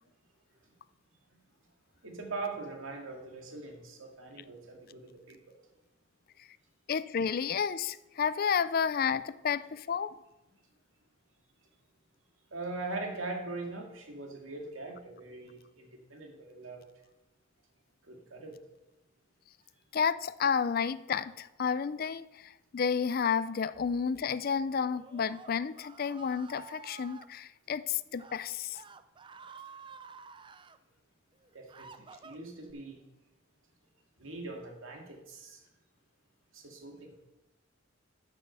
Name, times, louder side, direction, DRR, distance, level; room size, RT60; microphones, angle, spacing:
voice 1, 2.0-5.6 12.5-16.8 18.0-18.5 31.5-33.0 34.2-35.6 36.5-37.1, right 3 dB, 90° right, 1 dB, 2.2 m, -41 dB
voice 2, 6.9-10.2 19.9-28.8, left 6 dB, 45° left, 17 dB, 0.4 m, -31 dB
Screaming, 24.9-27.3 28.1-28.4 28.7-30.8 31.3-32.7, right 5 dB, 25° right, 0.4 m, -51 dB
8.7 x 6.4 x 6.6 m, 0.98 s
head